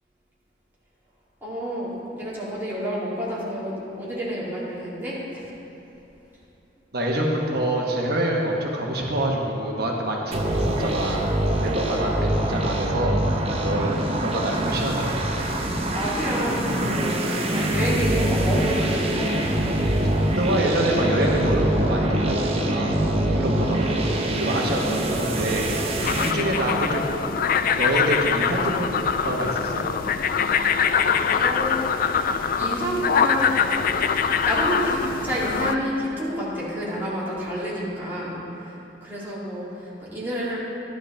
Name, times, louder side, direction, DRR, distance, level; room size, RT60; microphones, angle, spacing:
voice 1, 1.4-5.5 15.9-19.4 31.2-32.2 32.5-33.6 34.4-40.6, equal, 10° right, -9 dB, 2.6 m, -29 dB
voice 2, 6.9-11.3 11.6-13.9 14.2-15.5 20.0-20.1 20.3-22.9 23.3-27.2 27.7-29.8, right 1 dB, 65° right, -1 dB, 1.1 m, -26 dB
sound 1, 10.3-26.3, right 1 dB, 35° right, 0.8 m, -24 dB
sound 2, 17.5-28.5, equal, 20° left, 1.0 m, -39 dB
sound 3, 26.0-35.7, left 7 dB, 55° left, 0.4 m, -23 dB
11.5 x 11.0 x 3.3 m, 3.0 s
head